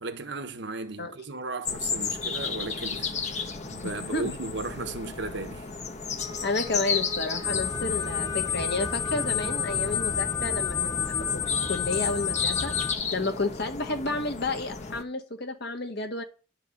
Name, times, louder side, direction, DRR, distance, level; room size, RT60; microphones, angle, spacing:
voice 1, 0.0-5.7, right 3 dB, 60° right, 1.3 m, -36 dB
sound 1, 1.7-15.0, left 5 dB, 35° left, 1.1 m, -34 dB
voice 2, 3.8-4.3 6.4-12.7 13.1-16.2, left 3 dB, 55° left, 1.4 m, -31 dB
Wind instrument woodwind instrument, 6.2-10.6, right 2 dB, 20° right, 0.9 m, -44 dB
sound 2, 7.4-12.9, left 7 dB, 15° left, 0.6 m, -29 dB
11.0 x 4.7 x 7.1 m
head